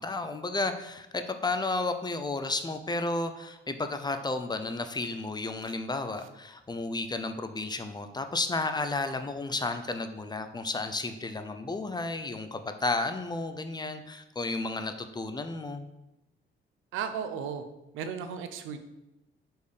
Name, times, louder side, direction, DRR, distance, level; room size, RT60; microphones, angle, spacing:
voice 1, 0.0-15.8, left 3 dB, 20° left, 8 dB, 0.6 m, -32 dB
voice 2, 16.9-17.6 17.9-18.8, right 7 dB, 85° right, 9 dB, 0.6 m, -34 dB
5.0 x 4.4 x 5.0 m, 0.92 s
cardioid pair, 90°, 20 cm